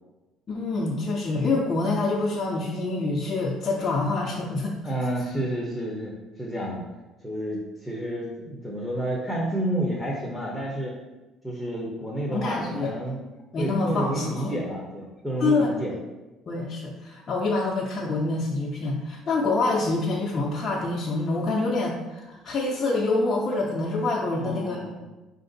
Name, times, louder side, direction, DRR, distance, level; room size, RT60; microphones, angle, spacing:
voice 1, 0.5-4.8 12.3-12.9 13.5-14.6 15.4-15.7 16.5-24.8, left 3 dB, 35° left, -4 dB, 0.5 m, -26 dB
voice 2, 4.8-6.1 6.4-6.8 7.2-10.9 11.4-13.2 13.6-15.9 24.3-25.0, right 1 dB, ahead, -3 dB, 0.7 m, -30 dB
4.6 x 2.5 x 3.9 m, 1.1 s
cardioid pair, 135°, 0 cm